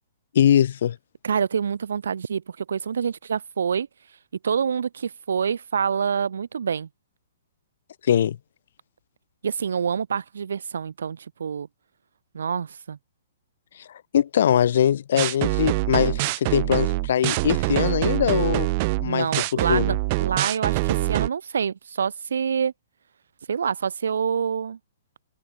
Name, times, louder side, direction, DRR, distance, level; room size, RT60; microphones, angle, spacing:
voice 1, 0.3-1.0 8.1-8.4 14.1-18.7 19.0-19.3 19.7-19.8, left 9 dB, 60° left, 2.6 m, -21 dB
voice 2, 1.2-4.2 4.4-6.9 9.4-11.7 12.3-13.0 19.1-22.7 23.5-24.8, right 7 dB, 90° right, 1.7 m, -27 dB
sound 1, 15.2-21.3, right 24 dB, 35° right, 0.4 m, -24 dB
hypercardioid pair, 160°, 0 cm